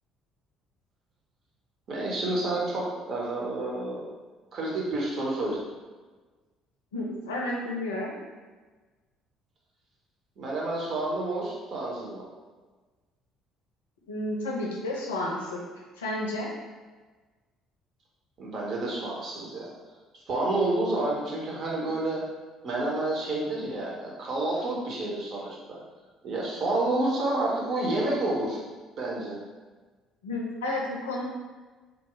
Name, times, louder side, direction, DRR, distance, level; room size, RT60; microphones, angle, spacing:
voice 1, 1.9-4.0 4.5-5.6 10.4-12.2 18.4-19.7 20.3-22.2 22.6-25.8 26.2-28.6 29.0-29.4, right 2 dB, 45° right, -3 dB, 0.7 m, -29 dB
voice 2, 6.9-8.2 14.1-15.6 16.0-16.5 30.2-31.2, left 1 dB, 75° left, -2 dB, 0.5 m, -31 dB
2.3 x 2.0 x 3.7 m, 1.3 s
figure-of-eight pair, 50°, 0 cm